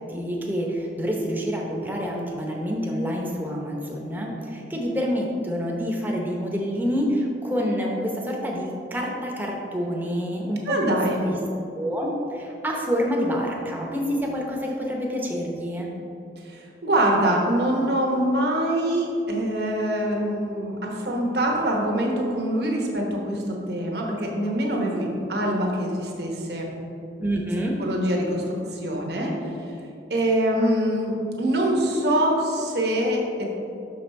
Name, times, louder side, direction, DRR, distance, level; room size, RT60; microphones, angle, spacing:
voice 1, 0.1-11.0 11.2-11.3 11.7-15.9 27.2-27.7, equal, 10° right, -1 dB, 0.8 m, -27 dB
voice 2, 10.7-11.3 16.4-26.7 27.8-29.3 30.1-33.4, right 1 dB, 65° right, 0 dB, 1.1 m, -24 dB
6.5 x 5.2 x 4.2 m, 2.8 s
head